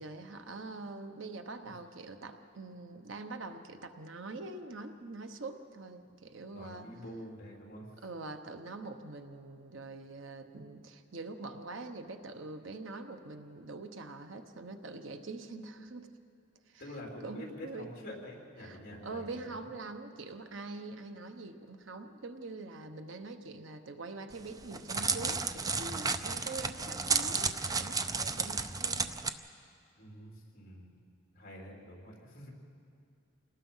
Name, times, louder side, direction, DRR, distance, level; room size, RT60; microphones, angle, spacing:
voice 1, 0.0-6.9 8.0-16.1 16.7-16.9 17.2-17.9 18.6-29.1, right 3 dB, 70° right, 7 dB, 1.1 m, -44 dB
voice 2, 6.5-7.9 16.8-19.6 30.0-31.0 31.3-32.5, left 1 dB, 50° left, -1 dB, 3.8 m, -47 dB
Crackle, 24.3-29.3, right 4 dB, 20° right, 0.6 m, -32 dB
27.5 x 19.0 x 5.7 m, 2.4 s
head